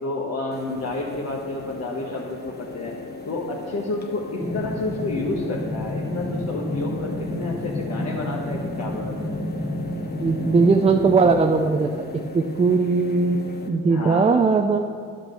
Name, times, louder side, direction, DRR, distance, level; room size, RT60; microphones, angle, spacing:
voice 1, 0.0-3.0 3.3-9.3 13.9-14.5, left 2 dB, 55° left, -3 dB, 1.4 m, -30 dB
sound 1, 0.5-13.7, left 4 dB, 35° left, 1.2 m, -38 dB
sound 2, 4.4-11.4, left 1 dB, 5° left, 1.0 m, -30 dB
voice 2, 10.2-12.1 12.3-13.4 13.7-14.9, right 4 dB, 20° right, 6 dB, 0.4 m, -19 dB
10.5 x 6.1 x 6.8 m, 2.3 s
cardioid pair, 90°, 30 cm